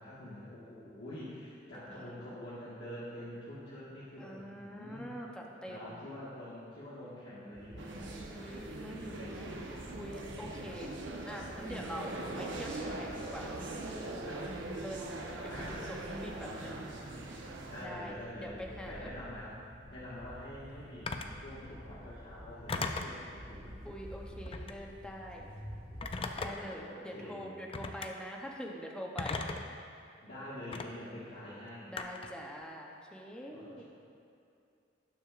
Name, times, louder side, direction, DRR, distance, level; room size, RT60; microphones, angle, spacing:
voice 1, 0.0-5.2 5.7-8.2 9.0-9.5 15.5-15.8 17.7-19.6 19.9-23.7 26.4-27.6 30.2-31.9 33.5-33.8, left 1 dB, 65° left, -11 dB, 1.7 m, -46 dB
voice 2, 1.8-2.1 4.2-6.0 8.3-10.9 11.3-14.1 14.7-15.0 15.4-16.8 17.8-19.1 23.8-25.5 26.4-29.4 31.9-33.8, equal, 5° left, -1 dB, 0.8 m, -45 dB
sound 1, 7.5-26.5, equal, 70° right, 1.7 m, -50 dB
sound 2, 7.8-17.9, right 2 dB, 90° right, 1.0 m, -41 dB
Telephone, 21.1-21.4 22.7-23.2 24.4-24.8 26.0-26.7 27.7-28.1 29.2-29.7 30.7-30.9 32.0-32.4, left 3 dB, 30° left, 0.5 m, -37 dB
18.5 x 6.1 x 2.5 m, 2.5 s
head